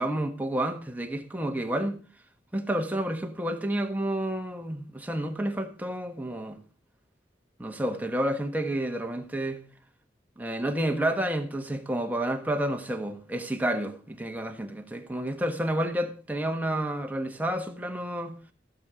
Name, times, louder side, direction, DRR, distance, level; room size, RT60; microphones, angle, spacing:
voice 1, 0.0-2.0 2.5-6.6 7.6-9.6 10.4-18.4, right 1 dB, 10° right, 1.4 m, -30 dB
15.5 x 7.3 x 5.1 m
head